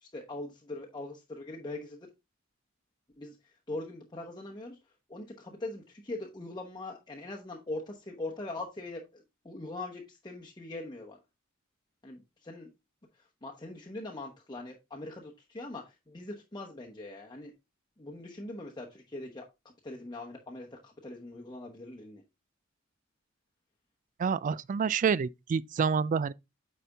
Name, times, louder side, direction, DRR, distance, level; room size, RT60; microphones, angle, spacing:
voice 1, 0.0-2.1 3.2-3.4 3.7-4.8 5.1-11.2 12.0-12.7 13.4-17.5 18.0-19.5 19.8-22.2, left 2 dB, 20° left, 0.9 m, -41 dB
voice 2, 24.2-26.3, right 6 dB, 40° right, 0.3 m, -28 dB
9.0 x 4.3 x 3.4 m
head